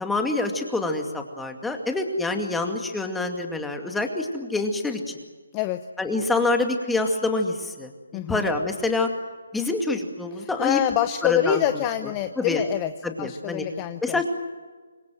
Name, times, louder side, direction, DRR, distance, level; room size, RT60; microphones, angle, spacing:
voice 1, 0.0-5.2 6.0-7.9 8.3-9.1 9.5-10.8 11.2-11.6 12.4-12.6 13.0-13.7 14.0-14.3, left 2 dB, 5° left, 4 dB, 2.3 m, -26 dB
voice 2, 8.1-8.5 10.4-12.9 13.2-14.3, left 12 dB, 20° left, 10 dB, 0.9 m, -26 dB
26.5 x 22.0 x 7.7 m, 1.4 s
hypercardioid pair, 155°, 0 cm